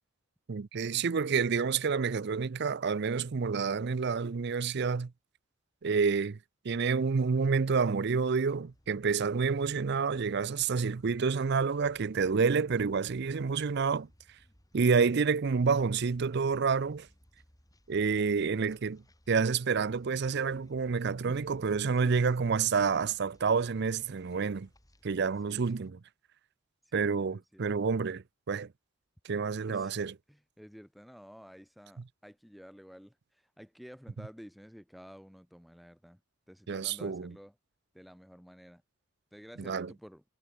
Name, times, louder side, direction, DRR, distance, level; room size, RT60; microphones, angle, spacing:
voice 1, 0.5-5.1 5.8-6.4 6.6-14.1 14.7-17.1 17.9-24.7 25.0-26.0 26.9-28.7 29.2-30.1 36.7-37.3 39.7-39.9, right 5 dB, 55° right, 0.5 m, -29 dB
sound 1, 8.6-25.9, equal, 20° left, 4.6 m, -63 dB
voice 2, 21.2-22.5 25.5-25.6 26.8-27.7 29.7-30.0 30.3-36.2 36.5-37.6 37.9-38.8 39.3-40.2, equal, ahead, 3.5 m, -52 dB
head